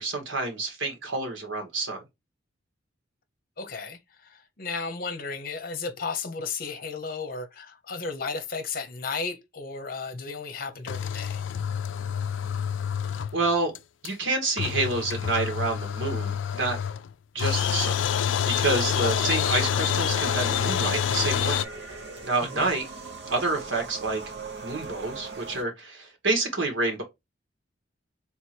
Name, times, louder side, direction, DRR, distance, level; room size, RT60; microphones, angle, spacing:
voice 1, 0.0-2.0 13.3-13.8 14.0-16.8 17.3-18.1 18.5-21.6 22.2-22.9 23.3-24.2 24.6-27.0, right 3 dB, 80° right, 1.8 m, -28 dB
voice 2, 3.6-11.4 19.0-19.2 22.4-22.7, left 4 dB, 50° left, 0.9 m, -34 dB
sound 1, 10.9-13.5 13.7-13.8 14.0-14.1 14.6-17.1 17.4-21.6, left 8 dB, 75° left, 0.4 m, -27 dB
sound 2, 18.8-25.6, right 3 dB, 60° right, 1.0 m, -39 dB
3.5 x 3.2 x 4.5 m
head